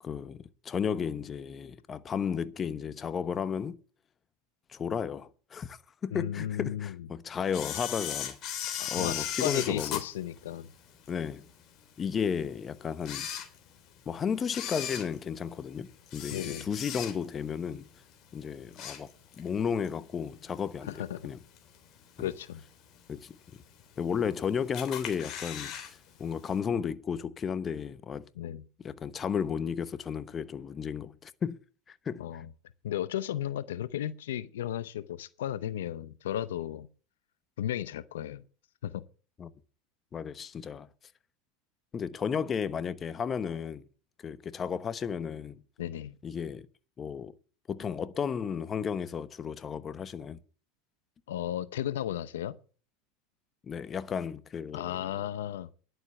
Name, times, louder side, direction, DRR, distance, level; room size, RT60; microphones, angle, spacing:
voice 1, 0.0-3.8 4.7-8.4 8.9-10.0 11.1-11.5 12.0-13.3 14.1-17.9 18.3-19.1 19.4-21.4 22.2-22.3 23.1-23.4 24.0-28.2 28.8-31.6 31.9-32.4 39.4-39.5 40.1-40.9 41.9-43.8 44.2-45.6 46.2-46.7 47.0-47.3 47.7-50.4 53.6-55.1, left 7 dB, 30° left, 0.9 m, -33 dB
voice 2, 6.1-7.1 8.8-10.7 16.3-16.7 20.8-21.3 22.2-22.6 28.4-28.6 32.2-32.5 32.8-36.9 37.6-38.4 38.8-39.0 45.8-46.1 51.3-52.6 54.7-55.7, left 11 dB, 80° left, 0.7 m, -34 dB
Camera, 7.5-11.1 11.6-11.7 12.4-12.5 12.9-14.0 14.4-17.5 17.8-18.1 18.5-19.5 19.8-19.9 20.9-21.0 21.6-22.0 22.4-22.5 22.7-22.8 22.9-23.0 23.8-24.3 24.7-25.9 26.2-26.3 26.5-26.6, left 9 dB, 50° left, 3.3 m, -37 dB
11.0 x 7.9 x 7.7 m
hypercardioid pair, 100°, 0 cm